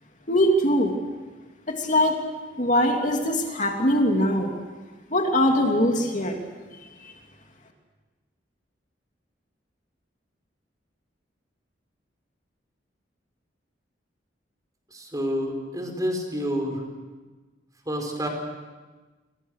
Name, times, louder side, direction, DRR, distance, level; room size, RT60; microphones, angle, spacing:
voice 1, 0.3-0.9 1.7-2.2 2.6-4.5 5.1-6.4 7.0-7.1, equal, 45° left, 2 dB, 2.9 m, -22 dB
voice 2, 14.9-16.8 17.8-18.3, equal, 20° right, 3 dB, 5.1 m, -28 dB
29.0 x 24.0 x 6.6 m, 1.3 s
head